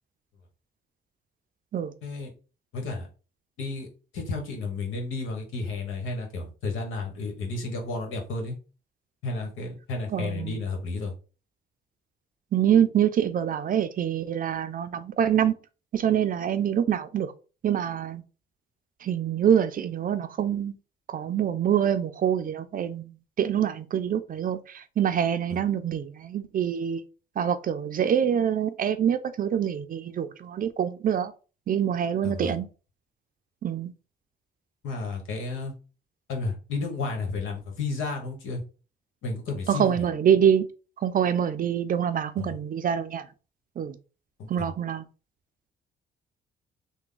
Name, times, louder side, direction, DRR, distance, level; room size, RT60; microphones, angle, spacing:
voice 1, 2.7-3.1 3.6-3.9 4.1-8.6 9.2-11.1 25.5-25.6 32.2-32.6 34.8-35.7 36.3-38.6 39.2-40.0 42.4-42.6 44.4-44.7, left 3 dB, 85° left, 1.2 m, -32 dB
voice 2, 10.1-10.6 12.5-15.5 15.9-17.3 17.6-18.2 19.0-20.7 21.1-27.0 27.4-31.3 31.7-32.7 33.6-33.9 39.7-40.7 41.0-43.3 43.8-44.0 44.5-45.0, right 9 dB, 45° right, 0.4 m, -25 dB
3.5 x 2.2 x 3.8 m
cardioid pair, 90°, 20 cm